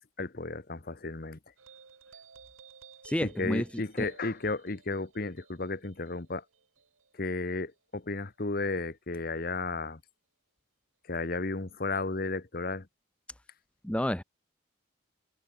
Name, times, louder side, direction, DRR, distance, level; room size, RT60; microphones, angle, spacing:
voice 1, 0.2-1.4 3.2-6.4 7.1-10.0 11.1-12.9, left 3 dB, 45° left, 1.1 m, -33 dB
sound 1, 1.6-8.4, right 5 dB, 85° right, 2.7 m, -56 dB
voice 2, 3.0-3.6 4.0-4.1 13.8-14.2, equal, 5° left, 0.6 m, -29 dB
head